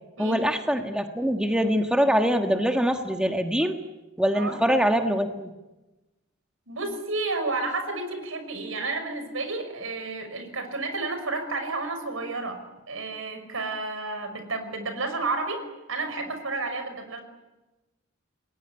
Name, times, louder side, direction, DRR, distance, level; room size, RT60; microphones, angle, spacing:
voice 1, 0.2-3.8 4.2-5.5, equal, 5° right, 5 dB, 1.5 m, -23 dB
voice 2, 6.7-12.6 12.9-15.6 15.9-17.2, right 3 dB, 75° right, 8 dB, 5.8 m, -31 dB
28.5 x 21.0 x 9.8 m, 1.1 s
head